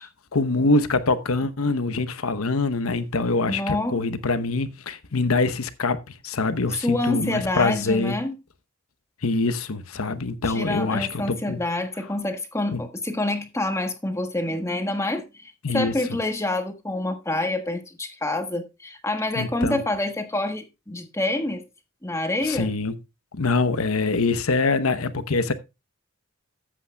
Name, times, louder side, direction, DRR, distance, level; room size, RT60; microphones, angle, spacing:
voice 1, 0.3-8.2 9.2-11.6 12.7-12.8 15.6-15.9 19.3-19.8 22.4-23.0 23.3-25.5, left 3 dB, 90° left, 1.0 m, -24 dB
voice 2, 3.5-4.0 6.7-8.3 10.4-21.6 22.0-22.7, left 1 dB, 15° left, 1.4 m, -27 dB
13.5 x 8.5 x 2.2 m
head